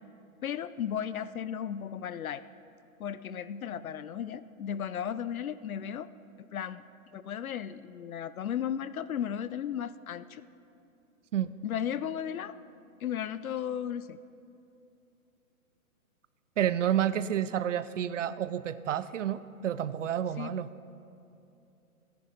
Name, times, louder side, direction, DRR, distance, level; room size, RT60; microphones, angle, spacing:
voice 1, 0.4-2.4 3.0-6.1 6.5-6.8 7.1-10.4 11.6-12.6 13.0-14.2 20.4-20.5, left 9 dB, 70° left, 16 dB, 0.7 m, -35 dB
voice 2, 16.6-20.7, right 10 dB, 55° right, 15 dB, 0.7 m, -30 dB
28.0 x 10.5 x 4.0 m, 2.7 s
hypercardioid pair, 135°, 44 cm